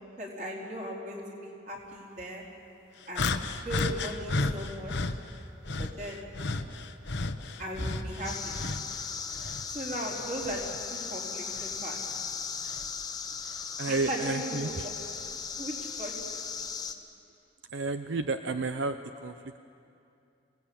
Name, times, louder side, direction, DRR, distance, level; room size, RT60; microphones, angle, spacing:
voice 1, 0.2-2.4 3.1-3.3 3.6-4.9 5.8-6.2 7.6-8.5 9.7-12.0 14.1-14.9 15.6-16.1 16.6-16.7, equal, 40° right, -3 dB, 4.4 m, -37 dB
sound 1, 3.1-5.2 5.6-9.0 9.3-10.8 11.6-11.7 12.7-12.8, left 3 dB, 70° left, 1.0 m, -33 dB
sound 2, 8.2-16.9, left 6 dB, 20° left, 1.1 m, -37 dB
voice 2, 13.8-14.9 17.7-19.6, right 3 dB, 80° right, 9 dB, 0.7 m, -31 dB
27.0 x 18.5 x 8.7 m, 2.6 s
head